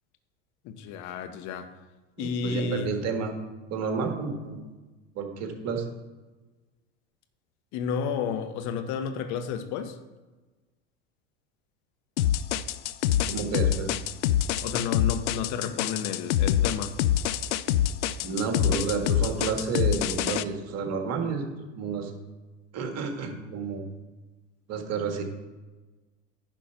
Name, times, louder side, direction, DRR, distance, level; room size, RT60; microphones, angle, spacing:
voice 1, 0.6-1.7 2.2-2.9 7.7-10.0 14.6-17.0, left 6 dB, 50° left, 8 dB, 1.1 m, -31 dB
voice 2, 2.2-3.3 3.7-4.6 5.2-5.9 13.3-13.9 18.2-21.5 21.8-22.1 22.7-23.9 24.7-25.2, right 5 dB, 45° right, 4 dB, 1.8 m, -30 dB
sound 1, 12.2-20.4, left 11 dB, 75° left, 0.5 m, -25 dB
10.0 x 4.6 x 6.0 m, 1.2 s
hypercardioid pair, 80°, 36 cm